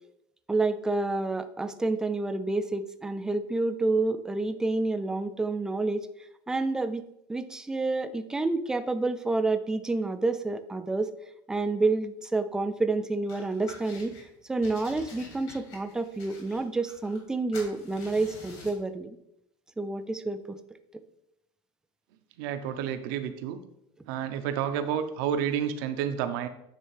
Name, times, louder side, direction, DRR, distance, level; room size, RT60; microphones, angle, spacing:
voice 1, 0.5-6.1 6.5-7.0 7.3-11.1 11.5-14.1 14.5-19.2 19.8-20.6, right 3 dB, 5° right, 10 dB, 0.3 m, -29 dB
sound 1, 13.3-14.2 14.6-17.3 17.5-18.8, left 3 dB, 55° left, 2.1 m, -48 dB
voice 2, 22.4-23.6 24.1-26.5, right 9 dB, 75° right, 10 dB, 0.7 m, -30 dB
9.2 x 3.3 x 3.2 m, 0.82 s
cardioid pair, 145°, 12 cm